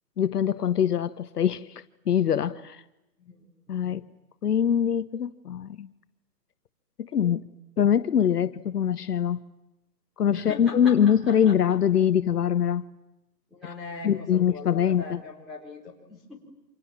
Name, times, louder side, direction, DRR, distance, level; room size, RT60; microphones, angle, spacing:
voice 1, 0.2-2.8 3.7-4.0 4.4-5.9 7.0-7.4 7.8-9.4 10.2-12.9 14.0-15.2, left 9 dB, 70° left, 1.0 m, -23 dB
voice 2, 10.3-11.5 13.5-16.3, left 3 dB, ahead, 3.8 m, -41 dB
29.0 x 26.5 x 7.4 m
hypercardioid pair, 175°, 49 cm